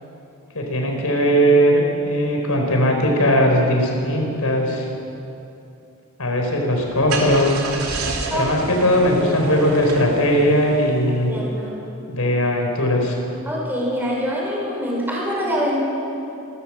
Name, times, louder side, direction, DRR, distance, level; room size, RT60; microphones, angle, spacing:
voice 1, 0.5-4.9 6.2-7.5 8.3-11.3 12.1-13.2, equal, 90° left, 1 dB, 4.4 m, -19 dB
Car / Engine starting, 6.7-11.4, right 3 dB, 80° right, 3.1 m, -30 dB
voice 2, 11.3-11.8 13.4-15.8, equal, 10° right, -4 dB, 5.1 m, -24 dB
27.5 x 13.0 x 7.5 m, 2.8 s
head